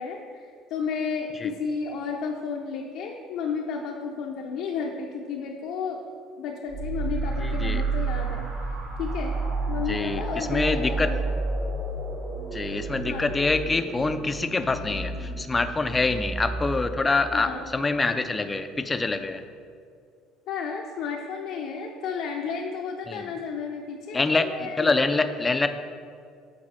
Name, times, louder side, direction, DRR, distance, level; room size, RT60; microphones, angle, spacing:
voice 1, 0.0-6.0 6.4-8.5 9.0-9.3 9.7-11.2 13.1-13.3 17.3-17.7 20.5-24.9, left 5 dB, 70° left, 0 dB, 0.6 m, -32 dB
sound 1, 6.7-18.1, right 3 dB, 55° right, 1.8 m, -31 dB
voice 2, 7.4-7.8 9.9-11.1 12.5-19.4 23.1-23.3 24.1-25.7, left 3 dB, 15° left, 9 dB, 0.4 m, -25 dB
7.8 x 3.9 x 5.5 m, 2.2 s
cardioid pair, 125°, 0 cm